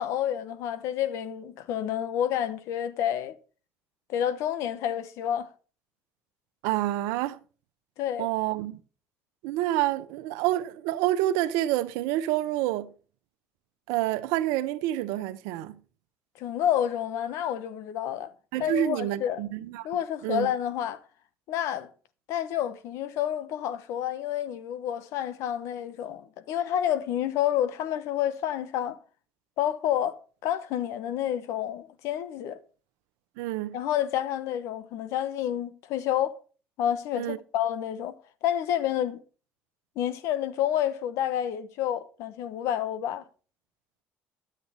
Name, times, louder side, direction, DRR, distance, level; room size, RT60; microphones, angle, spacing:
voice 1, 0.0-3.3 4.1-5.5 8.0-8.3 16.4-18.3 18.6-19.4 19.8-21.0 21.5-21.9 22.3-29.0 29.6-30.2 30.4-32.6 33.7-36.4 36.8-38.1 38.4-39.2 40.0-43.2, left 10 dB, 75° left, 1.0 m, -29 dB
voice 2, 6.6-7.4 8.2-8.8 9.4-12.9 13.9-15.8 18.5-19.9 20.2-20.5 33.4-33.8 37.2-37.4, right 14 dB, 85° right, 0.7 m, -28 dB
10.5 x 8.3 x 4.3 m
supercardioid pair, 80°, 5 cm